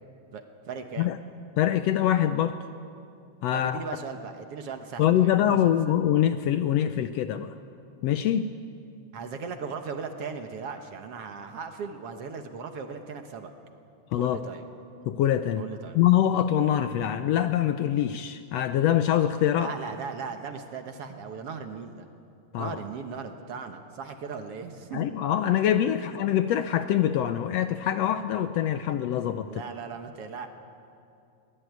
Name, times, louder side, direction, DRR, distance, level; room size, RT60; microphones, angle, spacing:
voice 1, 0.3-1.1 3.5-5.9 9.1-13.5 14.2-14.6 15.6-16.0 19.6-22.1 22.6-25.1 29.4-30.5, right 5 dB, 60° right, 6 dB, 2.0 m, -38 dB
voice 2, 1.6-2.6 3.4-3.8 5.0-7.5 8.0-8.5 14.1-14.4 15.0-15.6 15.9-19.7 22.5-22.7 24.9-29.6, left 11 dB, 75° left, 10 dB, 1.6 m, -24 dB
22.5 x 18.0 x 9.3 m, 2.5 s
omnidirectional pair, 3.4 m